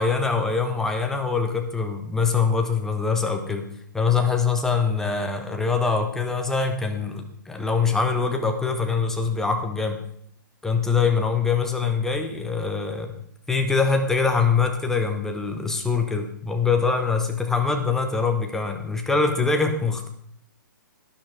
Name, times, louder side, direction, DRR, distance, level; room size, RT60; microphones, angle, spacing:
voice 1, 0.0-3.7 3.9-10.0 10.6-13.1 13.5-20.1, left 5 dB, 5° left, 4 dB, 1.1 m, -23 dB
12.0 x 10.0 x 4.8 m, 0.67 s
figure-of-eight pair, 125°, 11 cm